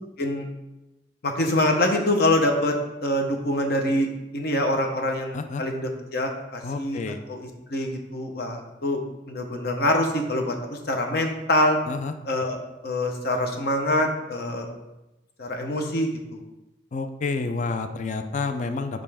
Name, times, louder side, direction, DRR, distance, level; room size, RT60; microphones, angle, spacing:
voice 1, 1.2-2.8 3.0-7.0 7.3-9.0 9.3-11.8 12.2-14.7 15.4-16.4, left 1 dB, 60° left, 3 dB, 0.8 m, -25 dB
voice 2, 6.6-7.2 11.9-12.1 16.9-19.0, left 4 dB, 45° left, 8 dB, 0.4 m, -29 dB
5.3 x 5.1 x 3.4 m, 0.98 s
head